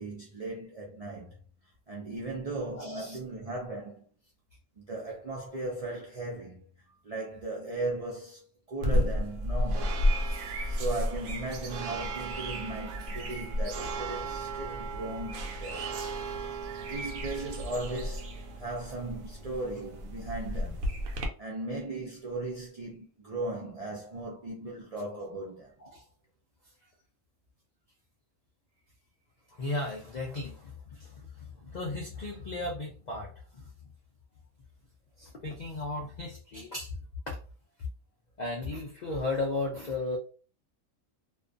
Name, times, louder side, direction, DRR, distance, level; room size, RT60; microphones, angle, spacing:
voice 1, 0.0-1.3 1.9-4.1 4.8-6.6 7.0-8.4 8.7-10.0 10.7-15.9 16.9-18.3 18.6-20.9 21.1-25.7, right 2 dB, 60° right, 0.4 m, -37 dB
voice 2, 2.8-3.2 10.3-10.5 25.8-26.0 29.6-33.6 35.2-36.9 37.3-37.4 38.4-40.2, left 2 dB, 65° left, 0.4 m, -35 dB
sound 1, 8.8-21.3, equal, 90° right, 1.0 m, -33 dB
2.4 x 2.2 x 2.5 m
omnidirectional pair, 1.4 m